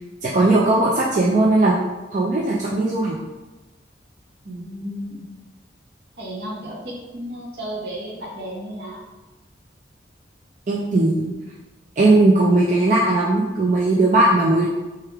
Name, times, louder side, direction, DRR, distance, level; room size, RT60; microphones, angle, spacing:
voice 1, 0.2-1.8 2.1-3.2 10.7-11.3 12.0-14.7, right 2 dB, 40° right, -4 dB, 0.4 m, -18 dB
voice 2, 4.4-5.2 6.2-9.0, equal, 65° right, -3 dB, 1.0 m, -33 dB
3.3 x 3.3 x 3.4 m, 1.1 s
head